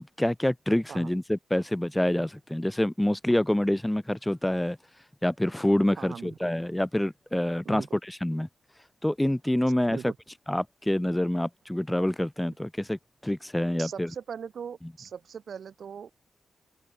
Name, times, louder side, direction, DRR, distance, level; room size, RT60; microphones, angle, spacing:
voice 1, 0.0-4.8 5.2-8.5 9.0-10.1 10.5-14.1, left 1 dB, 5° left, 0.5 m, -27 dB
voice 2, 6.0-6.5 7.6-7.9 9.9-10.2 13.8-16.2, right 7 dB, 65° right, 2.1 m, -40 dB
wide cardioid pair, 160°, 0 cm